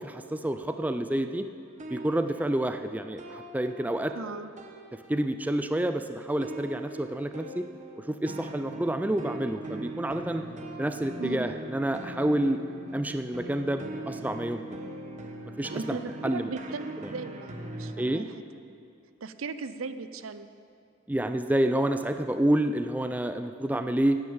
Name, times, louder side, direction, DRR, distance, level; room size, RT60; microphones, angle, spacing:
voice 1, 0.0-1.5 1.9-4.1 5.1-7.7 8.0-10.4 10.8-12.6 12.9-14.6 15.6-16.0 16.2-16.5 17.0-17.1 18.0-18.2 21.1-24.2, right 1 dB, 10° right, 8 dB, 0.3 m, -28 dB
sound 1, 1.7-4.3 4.6-5.6 6.4-17.9, right 1 dB, 35° right, 1.1 m, -41 dB
voice 2, 4.1-4.5 11.2-11.5 15.7-18.3 19.2-20.5, right 4 dB, 80° right, 12 dB, 0.6 m, -37 dB
9.5 x 8.8 x 8.8 m, 2.6 s
head